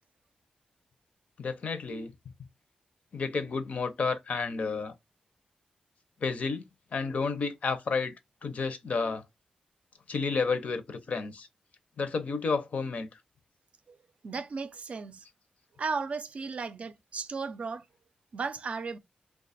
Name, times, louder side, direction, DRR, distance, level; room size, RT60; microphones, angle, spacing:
voice 1, 1.4-2.1 3.1-4.9 6.2-6.6 6.9-8.1 8.4-9.2 10.1-11.5 12.0-13.1, left 4 dB, 60° left, 0.6 m, -31 dB
voice 2, 14.2-15.3 15.8-17.8 18.3-19.0, right 4 dB, 55° right, 0.5 m, -35 dB
3.0 x 2.3 x 4.1 m
wide cardioid pair, 95°, 3 cm